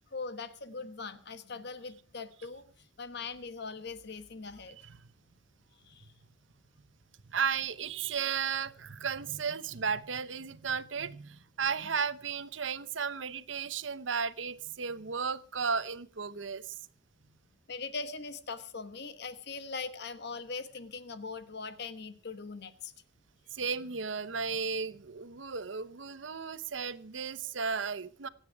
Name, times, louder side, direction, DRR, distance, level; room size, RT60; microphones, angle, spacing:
voice 1, 0.1-4.8 5.8-6.1 17.7-22.9, left 4 dB, 60° left, 11 dB, 1.2 m, -41 dB
voice 2, 7.3-16.7 23.5-28.3, right 6 dB, 75° right, 15 dB, 0.9 m, -34 dB
26.0 x 9.1 x 4.7 m, 0.42 s
head